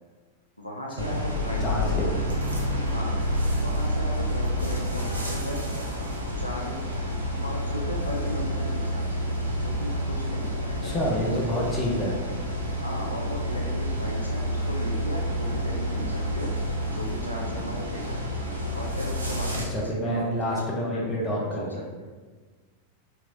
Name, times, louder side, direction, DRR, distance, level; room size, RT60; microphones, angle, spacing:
voice 1, 0.6-2.1 2.9-3.2 3.5-5.7 6.4-6.8 7.4-9.3 9.6-11.0 12.8-16.6 16.9-18.2 18.7-20.6 20.9-21.8, left 1 dB, 85° left, -1 dB, 0.4 m, -36 dB
sound 1, 1.0-19.6, equal, 80° right, 0.5 m, -29 dB
voice 2, 1.6-2.2 10.7-12.2 19.7-21.7, equal, 25° left, -3 dB, 0.8 m, -28 dB
3.0 x 3.0 x 2.6 m, 1.4 s
figure-of-eight pair, 90°, 0 cm